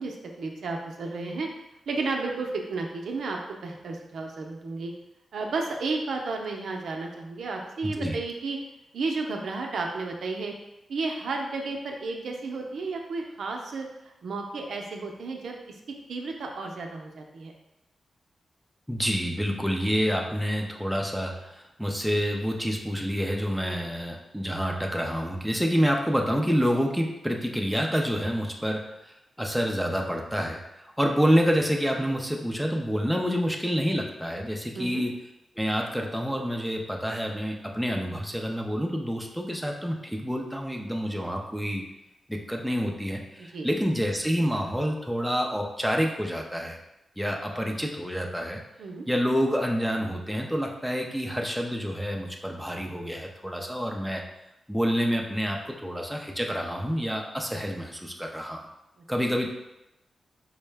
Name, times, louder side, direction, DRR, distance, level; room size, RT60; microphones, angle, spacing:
voice 1, 0.0-1.5 1.9-4.9 5.3-8.6 8.9-10.5 10.9-15.8 16.1-17.5 34.7-35.0 43.4-43.7 48.8-49.1, right 3 dB, 80° right, 1 dB, 0.5 m, -32 dB
voice 2, 7.8-8.2 18.9-35.1 35.6-41.8 42.3-46.8 47.2-48.6 49.1-54.2 54.7-58.6 59.1-59.5, equal, ahead, 0 dB, 0.5 m, -28 dB
4.6 x 2.1 x 3.3 m, 0.91 s
cardioid pair, 80°, 0 cm